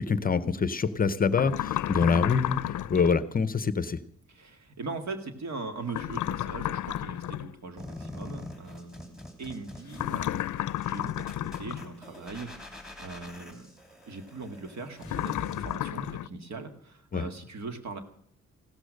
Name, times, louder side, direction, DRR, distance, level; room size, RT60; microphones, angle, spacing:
voice 1, 0.0-4.0 17.1-17.3, left 5 dB, 30° left, 15 dB, 0.6 m, -25 dB
sound 1, 1.3-3.2 5.9-7.5 9.9-11.9 15.0-16.3, left 13 dB, 90° left, 0.5 m, -32 dB
voice 2, 4.3-13.7 14.1-18.0, right 3 dB, 65° right, 7 dB, 2.0 m, -40 dB
sound 2, 7.8-15.8, left 1 dB, ahead, 2.7 m, -45 dB
16.0 x 13.0 x 6.4 m, 0.65 s
wide cardioid pair, 175°, 30 cm